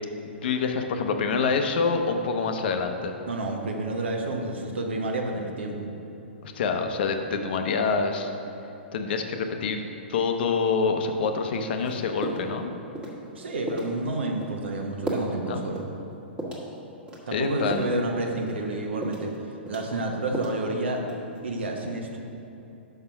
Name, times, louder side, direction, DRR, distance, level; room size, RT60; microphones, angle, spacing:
voice 1, 0.4-3.1 6.4-8.3 8.9-9.8 10.1-12.8 15.5-15.6 17.3-17.8, left 5 dB, 60° left, 6 dB, 0.7 m, -26 dB
voice 2, 3.3-5.9 13.3-15.8 17.3-19.3 19.7-21.0 21.4-22.2, right 2 dB, 75° right, 2 dB, 1.1 m, -29 dB
sound 1, 11.8-11.9 12.2-12.6 12.9-13.2 13.7-13.9 14.4-14.6 15.1-15.3 15.7-15.9 16.4-16.7 17.1-18.0 18.4-18.6 19.0-19.4 19.7-20.6 21.0-21.4, right 1 dB, 15° right, 1.5 m, -34 dB
5.7 x 5.7 x 5.8 m, 2.9 s
hypercardioid pair, 120°, 6 cm